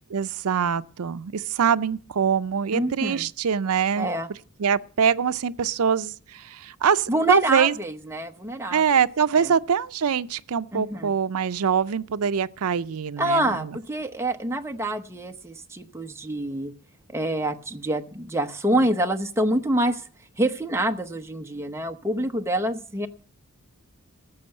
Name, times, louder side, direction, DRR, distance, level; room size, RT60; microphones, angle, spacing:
voice 1, 0.1-4.1 4.6-7.7 8.7-13.7, right 7 dB, 75° right, 0.5 m, -23 dB
voice 2, 2.7-3.3 4.0-4.3 7.1-8.8 9.3-9.5 10.7-11.1 13.2-16.7 17.1-20.0 20.4-23.1, right 1 dB, 10° right, 0.8 m, -26 dB
14.5 x 7.0 x 7.6 m
head